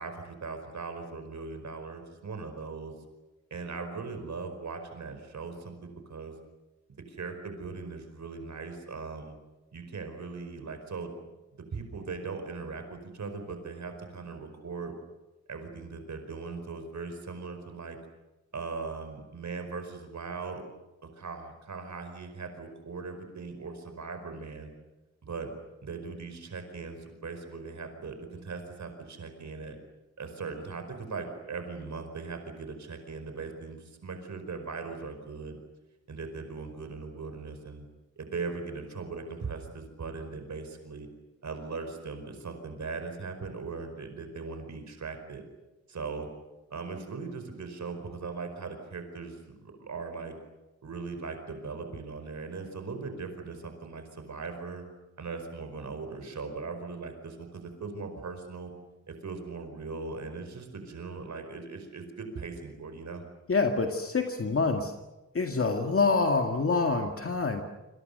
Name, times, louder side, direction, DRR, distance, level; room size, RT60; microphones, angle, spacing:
voice 1, 0.0-2.9 3.5-6.3 7.1-9.3 9.7-11.1 11.7-14.9 15.5-18.0 18.5-20.6 21.0-24.7 25.2-25.5 25.8-29.8 30.2-35.6 36.1-37.8 38.2-41.1 41.4-45.4 45.9-46.3 46.7-50.3 50.8-54.9 55.2-58.7 59.1-63.2, right 4 dB, 75° right, 7 dB, 4.9 m, -39 dB
voice 2, 63.5-64.9 65.3-67.6, left 4 dB, 50° left, 4 dB, 2.1 m, -26 dB
28.0 x 26.5 x 6.8 m, 1.1 s
wide cardioid pair, 155°, 29 cm